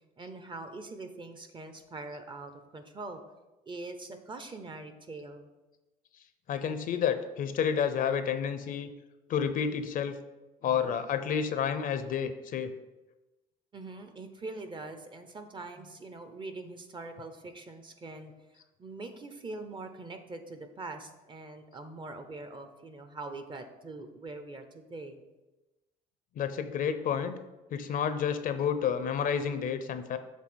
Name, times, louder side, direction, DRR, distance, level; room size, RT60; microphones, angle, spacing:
voice 1, 0.2-3.2 3.7-5.5 10.6-11.0 13.7-25.2, right 3 dB, 30° right, 7 dB, 0.8 m, -43 dB
voice 2, 6.5-8.9 9.3-10.2 10.6-12.7 26.4-27.4 27.7-30.2, left 7 dB, 55° left, 10 dB, 0.6 m, -30 dB
7.4 x 3.3 x 6.2 m, 1.1 s
cardioid pair, 110°, 17 cm